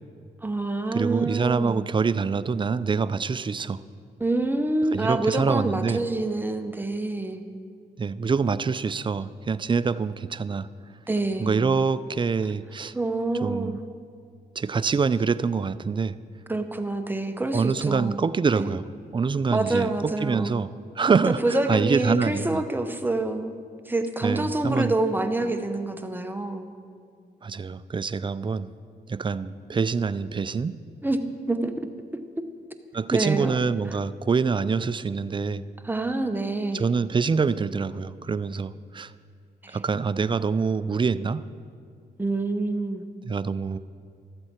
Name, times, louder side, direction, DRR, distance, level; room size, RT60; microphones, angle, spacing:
voice 1, 0.4-1.8 4.2-7.4 11.1-11.6 12.9-13.8 16.5-18.2 18.6-18.7 19.5-20.5 21.3-23.5 23.9-26.7 31.0-31.2 31.5-31.9 32.1-32.2 33.1-33.6 35.8-36.8 39.6-39.8 42.2-43.1, right 2 dB, 10° right, 7 dB, 0.8 m, -27 dB
voice 2, 0.9-3.8 4.9-6.0 8.0-10.7 11.4-12.9 13.4-13.8 14.6-16.1 17.5-18.9 19.1-20.7 21.0-22.6 24.2-24.9 27.4-28.7 29.1-30.8 32.9-35.6 36.7-39.1 39.7-41.5 43.2-43.8, right 5 dB, 25° right, 16 dB, 0.4 m, -25 dB
13.0 x 7.8 x 4.4 m, 2.2 s
cardioid pair, 55°, 19 cm